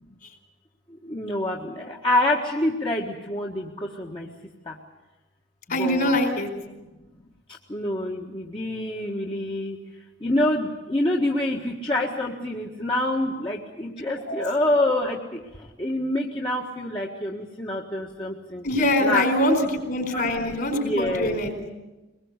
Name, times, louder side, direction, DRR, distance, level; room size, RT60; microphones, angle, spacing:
voice 1, 1.1-3.7 4.0-4.3 5.7-6.2 7.7-9.8 10.2-15.2 15.8-18.6 19.0-19.3 20.1-20.3 20.7-21.4, left 1 dB, 25° left, -1 dB, 1.6 m, -26 dB
voice 2, 5.7-6.5 14.3-14.4 18.6-19.5 19.9-21.5, left 1 dB, 50° left, 4 dB, 4.5 m, -23 dB
23.0 x 21.0 x 8.2 m, 1.1 s
head